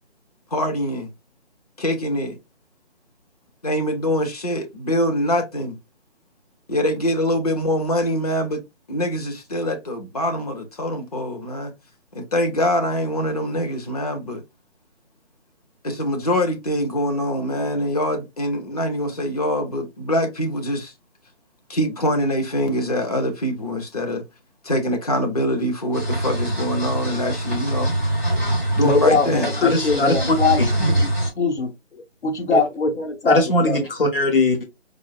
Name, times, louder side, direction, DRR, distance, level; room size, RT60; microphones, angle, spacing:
voice 1, 0.5-1.1 1.8-2.4 3.6-5.8 6.7-8.6 8.9-11.7 12.1-14.4 15.8-20.9 21.7-24.2 24.6-27.9 28.7-29.5, left 1 dB, 35° left, 0.7 m, -24 dB
sound 1, 25.9-31.3, right 1 dB, 10° left, 0.9 m, -24 dB
voice 2, 28.8-33.8, left 4 dB, 75° left, 1.2 m, -22 dB
voice 3, 29.6-30.7 32.5-32.6 33.3-34.6, left 2 dB, 50° left, 1.2 m, -20 dB
4.5 x 2.0 x 2.2 m
figure-of-eight pair, 165°, 35 cm